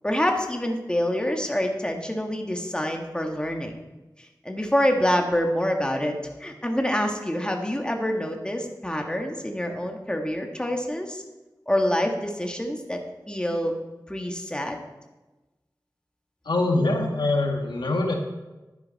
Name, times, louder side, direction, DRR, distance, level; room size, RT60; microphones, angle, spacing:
voice 1, 0.0-3.7 4.4-11.2 11.7-13.0 13.3-13.8 14.1-14.8, left 1 dB, 10° left, 2 dB, 1.7 m, -26 dB
voice 2, 16.4-18.1, left 2 dB, 80° left, 2 dB, 1.5 m, -23 dB
11.0 x 9.8 x 4.2 m, 1.1 s
wide cardioid pair, 50°, 8 cm